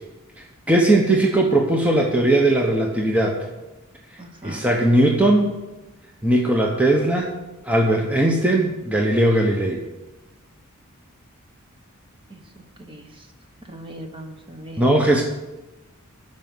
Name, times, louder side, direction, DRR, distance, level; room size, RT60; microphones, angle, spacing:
voice 1, 0.4-3.4 4.4-5.6 6.2-9.8 14.8-15.2, right 1 dB, 5° right, 0 dB, 0.9 m, -19 dB
voice 2, 4.2-4.7 12.3-13.3 13.6-14.9, right 1 dB, 25° right, 4 dB, 1.2 m, -40 dB
12.5 x 5.4 x 7.7 m, 1.1 s
head